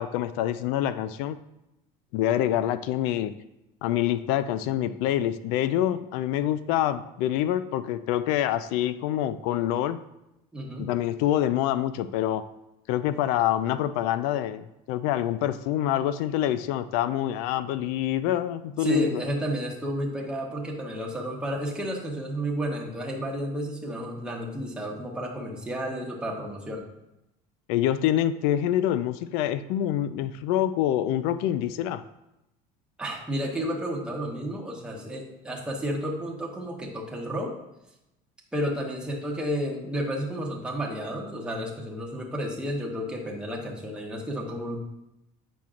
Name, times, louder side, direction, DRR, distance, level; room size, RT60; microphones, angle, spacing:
voice 1, 0.0-1.4 2.1-3.3 3.8-10.0 10.8-12.4 12.9-19.2 27.7-32.0, left 12 dB, 80° left, 13 dB, 0.4 m, -26 dB
voice 2, 10.5-10.9 18.8-26.9 33.0-37.5 38.5-44.8, equal, 5° right, -2 dB, 1.2 m, -31 dB
8.2 x 6.0 x 2.5 m, 0.89 s
cardioid pair, 140°, 16 cm